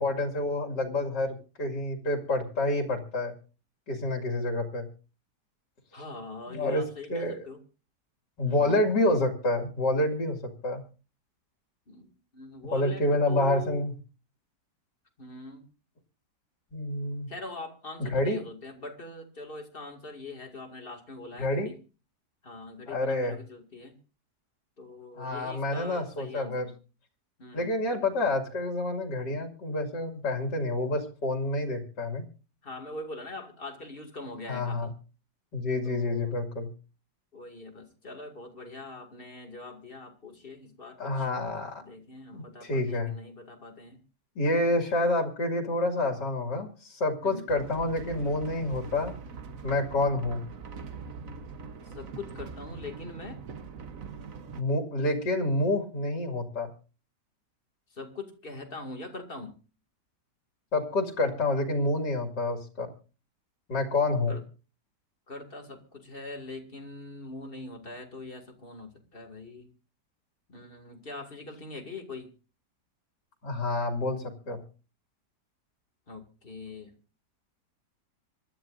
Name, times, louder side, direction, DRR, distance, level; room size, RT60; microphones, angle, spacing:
voice 1, 0.0-3.4 3.9-4.9 6.5-6.8 7.1-7.4 8.4-10.8 12.7-13.9 16.7-17.3 18.0-18.4 21.4-21.7 22.9-23.4 25.2-26.7 27.5-32.3 34.5-34.9 35.5-36.7 41.0-41.8 42.3-43.1 44.4-49.1 49.6-50.4 54.6-56.7 60.7-62.9 63.7-64.3 73.4-74.6, left 2 dB, 75° left, 3 dB, 2.9 m, -28 dB
voice 2, 5.9-7.6 8.4-8.8 11.9-13.8 15.2-15.7 17.3-21.8 22.4-24.0 24.8-26.7 27.4-27.8 32.6-34.9 35.8-36.4 37.3-41.3 41.8-44.0 47.2-47.5 51.9-53.4 57.9-59.5 64.3-64.4 65.3-69.7 70.5-72.3 76.1-76.9, left 3 dB, 30° left, 4 dB, 2.5 m, -42 dB
sound 1, 47.5-54.6, right 5 dB, 55° right, 1.4 m, -42 dB
26.0 x 12.5 x 2.6 m, 0.34 s
omnidirectional pair, 1.8 m